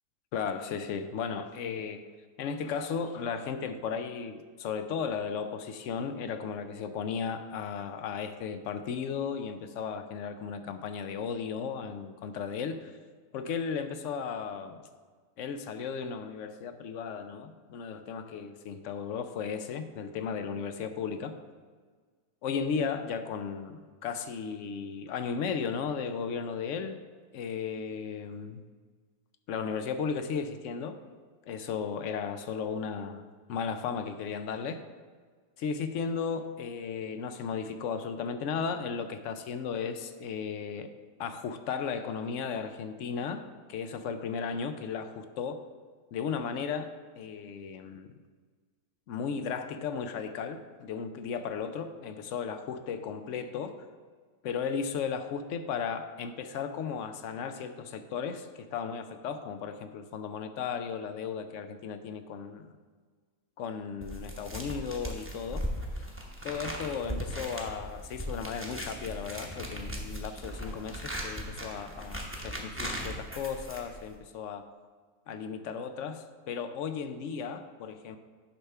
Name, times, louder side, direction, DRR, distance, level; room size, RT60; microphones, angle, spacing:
voice 1, 0.3-2.1 2.4-12.9 13.3-14.8 15.4-21.4 22.4-27.0 27.3-28.6 29.5-31.0 31.5-33.2 33.5-34.8 35.6-40.9 41.2-45.6 46.1-48.2 49.1-53.7 54.4-62.7 63.6-65.7 65.9-66.0 66.4-74.7 75.3-78.2, left 6 dB, 65° left, 9 dB, 0.8 m, -35 dB
sound 1, 64.0-74.2, equal, 10° right, 0.9 m, -38 dB
10.0 x 3.5 x 5.5 m, 1.5 s
omnidirectional pair, 1.5 m